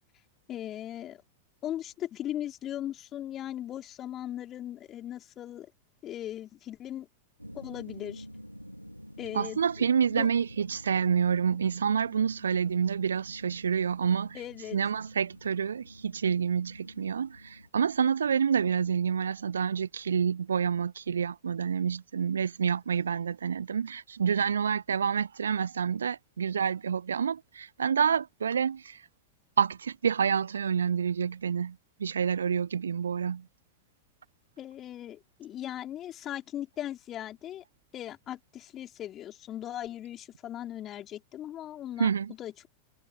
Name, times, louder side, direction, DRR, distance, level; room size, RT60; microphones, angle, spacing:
voice 1, 0.5-1.2 1.6-5.7 6.0-7.1 7.5-8.3 9.2-9.6 10.1-10.3 14.3-14.8 34.6-37.6 37.9-42.1 42.4-42.7, left 12 dB, 30° left, 4.7 m, -38 dB
sound 1, 7.4-17.7, equal, 90° left, 4.6 m, -48 dB
voice 2, 9.3-14.4 14.7-29.0 29.6-33.4 42.0-42.3, right 7 dB, 70° right, 0.7 m, -28 dB
figure-of-eight pair, 90°, 0 cm